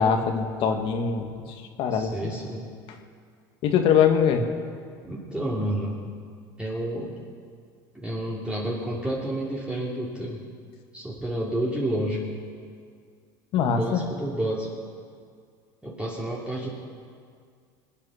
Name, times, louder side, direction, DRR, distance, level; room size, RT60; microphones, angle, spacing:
voice 1, 0.0-1.3 1.8-2.3 3.6-4.5 13.5-14.0, left 7 dB, 60° left, 5 dB, 1.9 m, -22 dB
voice 2, 1.9-2.7 5.0-6.1 6.6-7.1 7.9-10.4 10.9-12.4 13.5-14.7 15.8-16.7, right 1 dB, 10° right, -5 dB, 2.7 m, -30 dB
23.0 x 9.6 x 5.9 m, 2.1 s
supercardioid pair, 105°, 10 cm